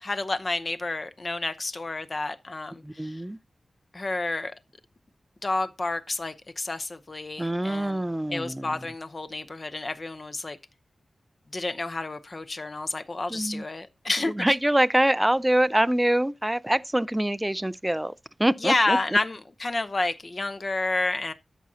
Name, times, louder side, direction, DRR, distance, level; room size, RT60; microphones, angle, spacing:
voice 1, 0.0-3.2 3.9-4.5 5.4-8.0 8.3-10.6 11.5-14.3 18.6-21.3, left 2 dB, 35° left, 0.7 m, -29 dB
voice 2, 2.8-3.4 7.4-8.8 13.3-13.6 14.3-18.1 18.4-19.0, right 1 dB, 10° right, 0.4 m, -24 dB
13.0 x 6.1 x 2.8 m
wide cardioid pair, 150°, 0 cm